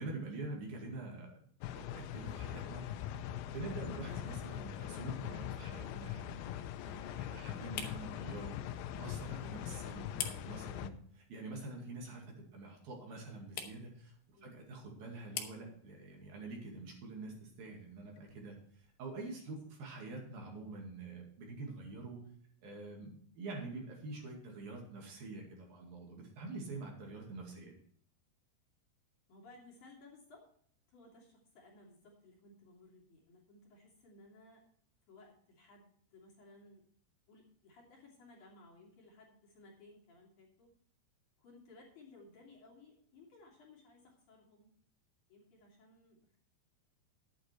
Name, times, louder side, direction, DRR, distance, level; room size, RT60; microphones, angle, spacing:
voice 1, 0.0-1.4 1.8-3.1 3.5-6.5 6.8-8.5 8.9-14.1 14.4-22.2 22.6-27.8, right 3 dB, 60° right, 0 dB, 3.9 m, -46 dB
sound 1, 1.6-10.9, left 11 dB, 90° left, 3.0 m, -42 dB
sound 2, 4.2-19.0, left 8 dB, 70° left, 3.1 m, -51 dB
voice 2, 29.3-30.4 30.9-34.6 35.1-36.8 37.3-40.7 41.4-44.7 45.3-46.4, left 2 dB, 50° left, -3 dB, 3.9 m, -59 dB
11.5 x 9.0 x 4.5 m, 0.62 s
omnidirectional pair, 5.0 m